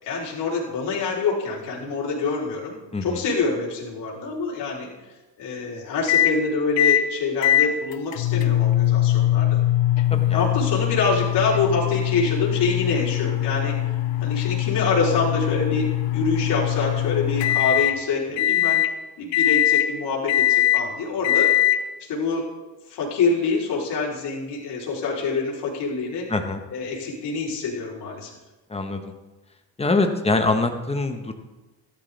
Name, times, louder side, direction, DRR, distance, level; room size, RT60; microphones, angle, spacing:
voice 1, 0.0-2.8 3.0-4.9 5.4-9.6 10.3-13.7 14.2-15.8 16.1-18.8 19.2-21.5 22.1-22.5 22.9-26.3 26.7-28.3, left 4 dB, 65° left, -4 dB, 4.0 m, -26 dB
voice 2, 2.9-3.2 10.1-10.5 26.3-26.6 28.7-29.1 29.8-31.3, left 3 dB, 15° left, 5 dB, 1.3 m, -24 dB
sound 1, 6.1-6.3 6.8-7.0 7.4-18.0 18.4-18.9 19.3-19.9 20.3-20.8 21.2-21.8, left 13 dB, 85° left, 0.9 m, -21 dB
14.5 x 12.0 x 3.5 m, 1.1 s
cardioid pair, 110°, 43 cm